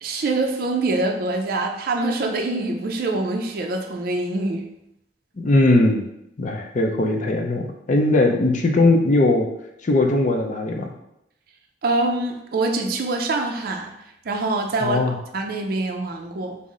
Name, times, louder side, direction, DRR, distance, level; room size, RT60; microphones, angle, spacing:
voice 1, 0.0-4.7 11.8-13.9 14.3-15.0 15.3-16.6, right 2 dB, 55° right, 2 dB, 0.4 m, -24 dB
voice 2, 5.4-6.1 6.4-9.5 9.8-10.9 14.8-15.2, left 2 dB, 45° left, 3 dB, 0.5 m, -19 dB
5.4 x 2.0 x 3.7 m, 0.83 s
head